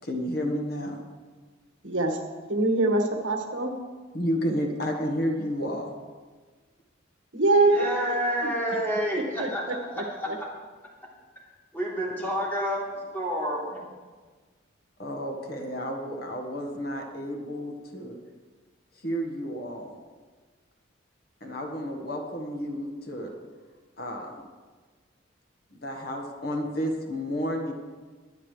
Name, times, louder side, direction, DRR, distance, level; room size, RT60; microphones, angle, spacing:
voice 1, 0.0-1.0 4.1-5.9 15.0-18.2 19.0-19.9 21.4-23.4 24.0-24.4 25.7-27.7, equal, 50° left, 2 dB, 1.5 m, -31 dB
voice 2, 1.8-2.2 2.5-3.7 7.3-8.5 9.4-9.5 10.3-10.4, right 2 dB, 70° right, 3 dB, 1.7 m, -24 dB
voice 3, 7.7-10.3 11.7-13.8, equal, 10° left, -6 dB, 3.4 m, -29 dB
23.0 x 9.7 x 3.3 m, 1.4 s
head